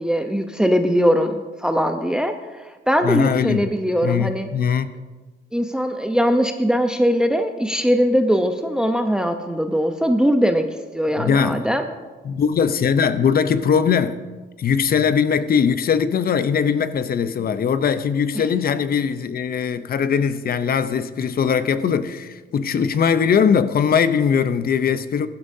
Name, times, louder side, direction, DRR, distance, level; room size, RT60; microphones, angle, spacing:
voice 1, 0.0-4.5 5.5-10.6 10.9-11.9 18.3-18.4, equal, 5° right, 0.8 m, -20 dB
voice 2, 3.0-3.7 4.0-4.9 11.2-11.6 12.2-14.2 14.6-25.3, left 7 dB, 50° left, 0.7 m, -20 dB
16.5 x 12.0 x 2.7 m
cardioid pair, 90°, 20 cm